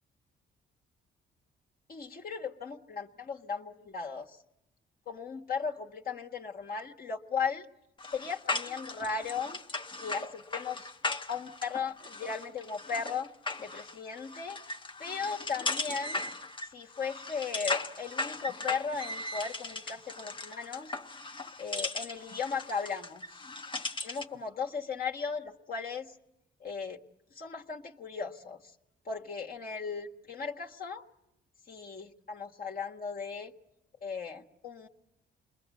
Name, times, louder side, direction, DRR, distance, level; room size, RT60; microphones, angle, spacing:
voice 1, 1.9-4.4 5.1-7.7 8.1-9.6 10.0-10.9 11.3-13.3 13.6-14.6 15.0-16.2 16.7-21.0 21.6-23.5 24.0-26.1 26.6-27.0 27.3-28.6 29.0-31.0 31.7-33.5 34.0-34.9, left 5 dB, 50° left, 0 dB, 1.6 m, -36 dB
sound 1, 8.0-24.4, left 2 dB, 25° left, 0.9 m, -38 dB
28.0 x 21.5 x 8.4 m, 0.91 s
cardioid pair, 90°, 20 cm